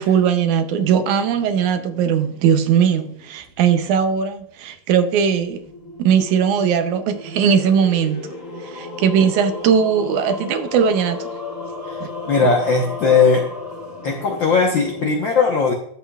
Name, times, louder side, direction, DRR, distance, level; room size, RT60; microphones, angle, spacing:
voice 1, 0.0-5.6 6.0-8.2 8.6-11.3 12.0-12.1, right 7 dB, 75° right, 8 dB, 2.0 m, -19 dB
sound 1, 0.8-4.2 5.2-15.1, left 3 dB, 10° left, 3.1 m, -35 dB
voice 2, 11.8-13.5 14.0-15.7, left 5 dB, 75° left, 1 dB, 1.0 m, -18 dB
12.5 x 8.1 x 2.4 m, 0.66 s
omnidirectional pair, 3.8 m